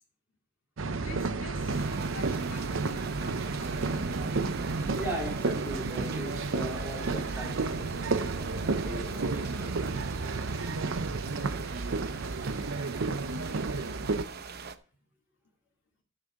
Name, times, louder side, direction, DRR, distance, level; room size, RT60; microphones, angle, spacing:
sound 1, 0.8-14.2, right 3 dB, 85° right, 0.7 m, -32 dB
voice 1, 1.0-3.8, left 2 dB, 80° left, 2.3 m, -46 dB
sound 2, 1.7-14.8, right 4 dB, 55° right, 0.8 m, -41 dB
voice 2, 5.0-10.1, equal, 10° right, 3.5 m, -39 dB
11.5 x 6.2 x 5.1 m
head